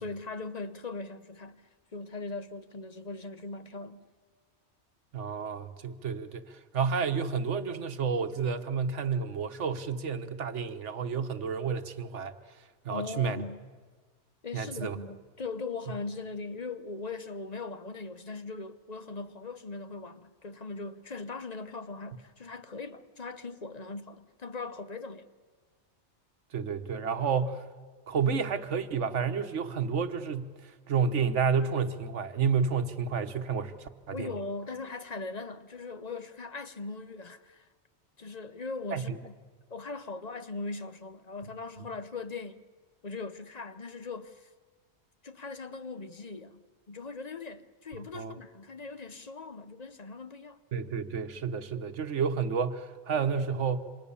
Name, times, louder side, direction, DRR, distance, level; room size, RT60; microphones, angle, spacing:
voice 1, 0.0-4.0 12.9-13.6 14.4-25.3 34.1-37.7 38.2-39.3 39.7-42.6 43.0-44.5 45.2-50.6, left 3 dB, 40° left, 1.0 m, -40 dB
voice 2, 5.1-12.3 12.8-13.4 14.5-15.0 26.5-27.6 28.1-34.3 38.9-39.2 41.8-41.9 47.9-48.4 50.7-53.8, right 6 dB, 85° right, 1.5 m, -30 dB
28.0 x 25.5 x 7.1 m
omnidirectional pair, 1.2 m